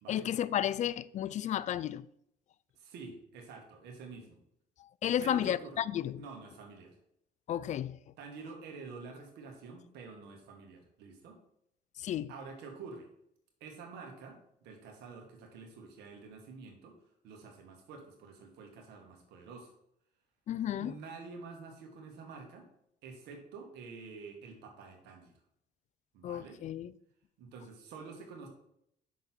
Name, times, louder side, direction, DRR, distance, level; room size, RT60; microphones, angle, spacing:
voice 1, 0.1-2.0 5.0-6.1 7.5-8.0 12.0-12.3 20.5-20.9 26.2-26.9, left 11 dB, 45° left, 0.4 m, -32 dB
voice 2, 2.7-4.4 5.2-5.8 6.2-6.9 8.2-11.4 12.3-13.1 13.6-17.0 17.2-19.7 20.8-22.7 23.0-25.3 26.1-26.6 27.4-28.5, right 4 dB, 85° right, 1.8 m, -48 dB
6.3 x 4.0 x 5.9 m
cardioid pair, 110°, 17 cm